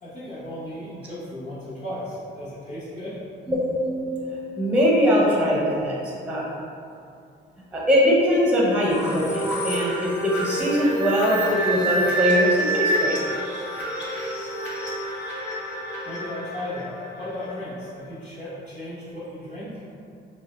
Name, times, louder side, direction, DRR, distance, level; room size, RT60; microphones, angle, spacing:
voice 1, 0.0-3.2 16.0-19.8, left 1 dB, 35° left, -13 dB, 0.9 m, -35 dB
voice 2, 3.5-6.5 7.7-13.2, equal, 5° right, -5 dB, 0.6 m, -22 dB
sound 1, 8.9-17.5, right 1 dB, 65° left, 0.7 m, -27 dB
2.7 x 2.2 x 3.1 m, 2.4 s
cardioid pair, 90°, 20 cm